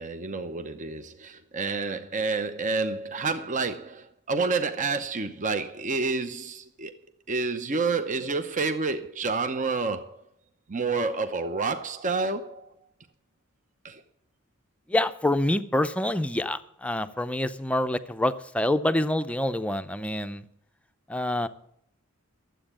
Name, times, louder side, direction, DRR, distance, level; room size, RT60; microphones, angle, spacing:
voice 1, 0.0-6.9 7.3-10.2 10.7-12.7 13.8-14.0, right 4 dB, 35° right, 8 dB, 0.8 m, -29 dB
voice 2, 14.9-20.4 21.1-21.5, left 1 dB, 5° left, 10 dB, 0.6 m, -26 dB
12.0 x 8.1 x 8.8 m, 0.71 s
head